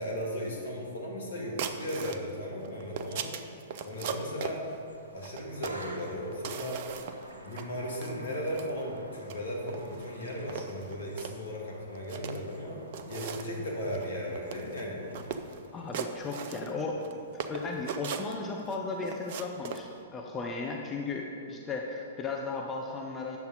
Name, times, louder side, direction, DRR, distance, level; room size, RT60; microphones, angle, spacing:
voice 1, 0.0-3.3 3.8-4.6 5.1-6.8 7.4-12.8 13.1-15.4, equal, 65° left, -2 dB, 1.9 m, -36 dB
sound 1, 1.6-2.2 2.6-4.6 5.2-5.9 6.3-7.2 7.5-7.7 8.0-8.7 9.2-9.4 9.7-10.1 10.5-11.3 11.9-12.6 12.9-13.5 13.9-14.1 14.3-14.8 15.1-15.6 15.9-17.1 17.4-18.8 19.0-19.8, right 7 dB, 50° right, 0.5 m, -38 dB
sound 2, 4.9-16.2, right 1 dB, 85° right, 0.9 m, -50 dB
voice 2, 15.7-23.4, left 3 dB, 20° left, 0 dB, 0.7 m, -36 dB
9.2 x 7.0 x 4.0 m, 2.6 s
figure-of-eight pair, 110°, 0 cm